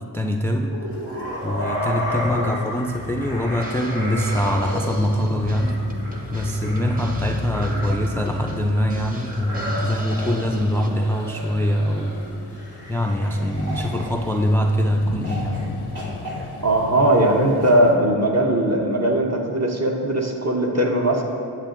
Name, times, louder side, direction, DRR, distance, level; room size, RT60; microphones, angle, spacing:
voice 1, 0.1-0.8 1.4-5.8 6.3-12.2 12.5-12.6 12.9-15.6, equal, 5° left, 3 dB, 0.3 m, -23 dB
sound 1, 0.7-14.7 15.2-15.7 15.9-17.7, equal, 75° right, 1.7 m, -33 dB
sound 2, 0.9-17.9, left 5 dB, 90° left, 0.5 m, -37 dB
Drum kit, 3.6-10.9, equal, 20° right, 0.8 m, -41 dB
voice 2, 16.6-21.2, right 1 dB, 40° right, 0 dB, 1.0 m, -19 dB
9.0 x 7.3 x 2.6 m, 2.7 s
cardioid pair, 60°, 39 cm